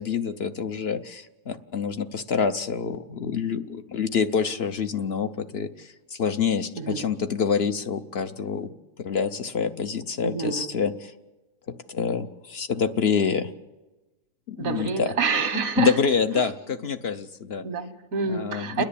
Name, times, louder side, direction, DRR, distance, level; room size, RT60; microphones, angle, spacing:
voice 1, 0.0-8.7 9.0-11.1 11.9-13.5 14.5-15.1 15.8-17.7 18.3-18.8, left 6 dB, 55° left, 8 dB, 0.9 m, -27 dB
voice 2, 6.8-7.1 10.2-10.7 14.6-16.0 16.4-16.5 16.7-16.8 17.6-18.8, right 5 dB, 90° right, 8 dB, 1.9 m, -28 dB
29.5 x 10.5 x 8.5 m, 1.1 s
omnidirectional pair, 1.4 m